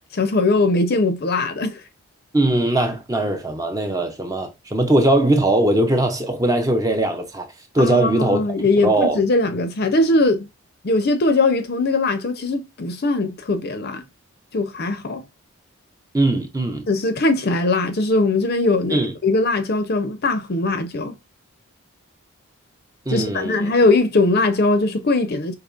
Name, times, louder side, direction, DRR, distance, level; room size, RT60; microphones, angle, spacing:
voice 1, 0.1-1.8 7.8-10.5 10.8-14.0 14.5-15.2 16.9-21.2 23.1-25.5, left 2 dB, 45° left, 0.5 m, -20 dB
voice 2, 2.3-7.5 7.7-8.4 8.8-9.2 16.1-16.9 18.9-19.1 23.1-23.7, right 1 dB, 15° right, 0.5 m, -20 dB
5.1 x 2.9 x 2.4 m
head